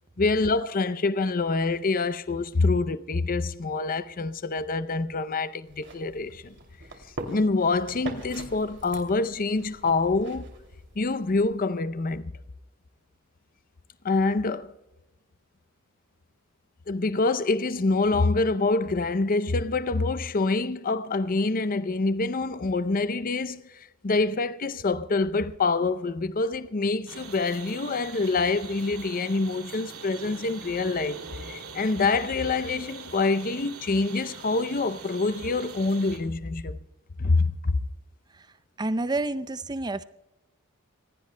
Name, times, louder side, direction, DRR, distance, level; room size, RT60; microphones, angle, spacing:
voice 1, 0.2-6.5 7.3-10.5 11.0-12.3 14.0-14.7 16.9-36.8 37.2-37.8, left 3 dB, 40° left, 0.6 m, -26 dB
sound 1, 5.6-11.6, right 2 dB, 55° right, 2.7 m, -43 dB
sound 2, 27.1-36.2, right 5 dB, 75° right, 2.7 m, -43 dB
voice 2, 38.8-40.0, right 2 dB, 20° right, 0.5 m, -28 dB
26.5 x 18.0 x 2.2 m
head